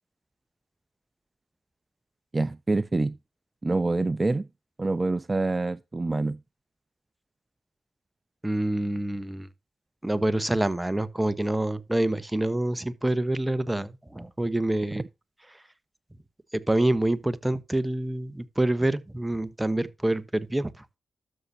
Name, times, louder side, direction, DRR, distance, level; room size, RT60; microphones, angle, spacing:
voice 1, 2.3-3.2 3.6-4.5 4.8-6.4, right 2 dB, 30° right, 0.5 m, -26 dB
voice 2, 8.4-9.5 10.0-15.0 16.5-21.0, right 1 dB, 15° right, 1.1 m, -27 dB
12.5 x 6.9 x 2.8 m
supercardioid pair, 40°, 0 cm